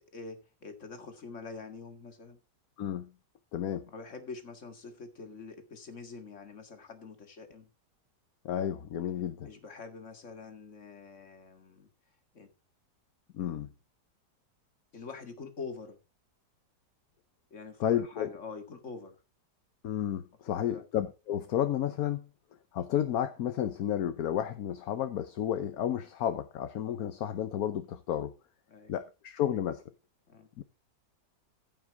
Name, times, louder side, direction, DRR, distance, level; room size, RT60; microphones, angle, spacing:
voice 1, 0.0-2.4 3.9-7.7 9.4-11.9 12.3-12.5 14.9-16.0 17.5-19.2 20.6-20.8 28.7-28.9 30.3-30.5, left 4 dB, 45° left, 2.1 m, -45 dB
voice 2, 2.8-3.1 3.5-3.9 8.4-9.5 13.3-13.7 17.8-18.3 19.8-22.3 22.7-28.3 28.9-29.8 30.6-30.7, left 10 dB, 65° left, 1.2 m, -32 dB
15.0 x 5.9 x 4.7 m
omnidirectional pair, 1.9 m